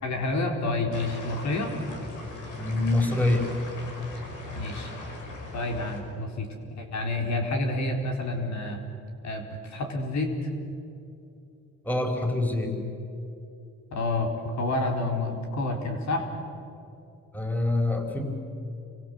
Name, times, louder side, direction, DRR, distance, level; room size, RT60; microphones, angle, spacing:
voice 1, 0.0-1.7 4.5-4.9 5.5-6.5 6.8-8.8 9.2-10.5 13.9-16.3, left 2 dB, 65° left, 2 dB, 4.1 m, -29 dB
sound 1, 0.9-6.0, left 2 dB, 85° left, 5.6 m, -39 dB
voice 2, 2.6-3.5 11.8-12.8 17.3-18.2, left 2 dB, 5° left, 3 dB, 4.7 m, -25 dB
29.0 x 24.0 x 7.9 m, 2.7 s
cardioid pair, 90°, 30 cm